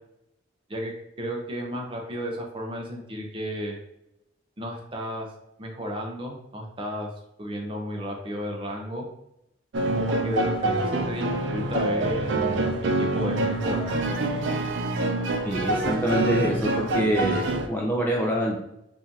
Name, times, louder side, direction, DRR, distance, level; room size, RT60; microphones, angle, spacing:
voice 1, 1.2-3.8 4.6-5.3 5.6-7.1 7.4-9.1 9.9-14.0, equal, 25° right, 0 dB, 0.7 m, -33 dB
sound 1, 9.7-17.7, right 2 dB, 75° right, 0.5 m, -26 dB
voice 2, 15.5-18.6, equal, 10° left, -2 dB, 0.4 m, -26 dB
4.8 x 2.6 x 2.7 m, 0.83 s
head